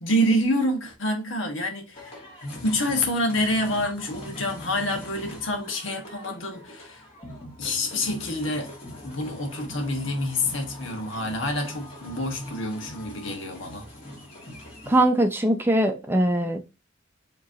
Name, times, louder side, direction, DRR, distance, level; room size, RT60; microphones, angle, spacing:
voice 1, 0.0-7.0 7.6-8.8 9.0-13.9, left 1 dB, 85° left, 1.3 m, -27 dB
sound 1, 1.9-15.0, left 1 dB, 35° left, 1.9 m, -42 dB
voice 2, 14.9-16.6, right 1 dB, 10° right, 0.5 m, -21 dB
4.9 x 3.0 x 2.8 m
head